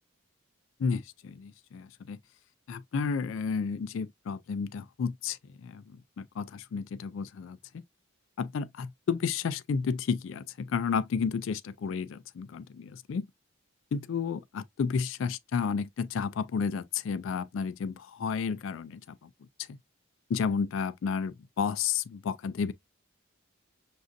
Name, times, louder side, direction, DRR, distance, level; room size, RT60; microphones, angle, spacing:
voice 1, 0.8-2.2 2.7-7.6 8.4-13.3 13.9-19.3 19.6-19.8 20.3-22.7, left 6 dB, 70° left, 0.3 m, -32 dB
6.1 x 2.5 x 2.5 m
head